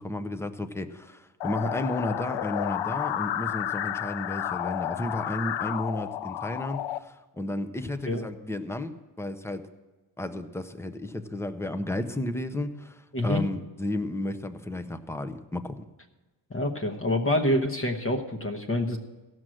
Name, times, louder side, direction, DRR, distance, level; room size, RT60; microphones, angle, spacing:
voice 1, 0.0-9.7 10.2-15.9, left 1 dB, 5° left, 9 dB, 0.6 m, -33 dB
sound 1, 1.4-7.0, left 11 dB, 90° left, 0.5 m, -31 dB
voice 2, 13.1-13.4 16.5-19.0, left 1 dB, 30° left, 3 dB, 1.0 m, -26 dB
15.5 x 6.3 x 7.7 m, 1.2 s
wide cardioid pair, 120°, 43 cm